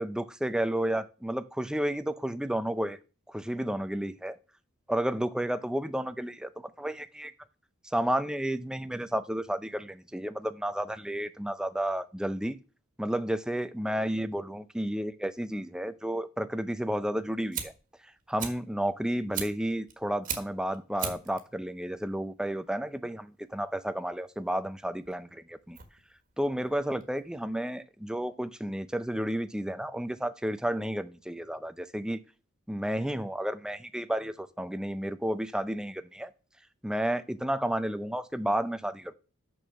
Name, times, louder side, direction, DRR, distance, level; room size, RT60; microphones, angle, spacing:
voice 1, 0.0-3.0 3.3-4.4 4.9-6.5 6.8-7.3 7.9-12.6 13.0-17.7 18.3-25.8 26.4-32.2 32.7-36.3 36.8-39.1, right 1 dB, 5° right, 0.4 m, -32 dB
Fire, 17.1-27.6, right 7 dB, 40° right, 1.6 m, -41 dB
6.4 x 6.2 x 6.3 m
head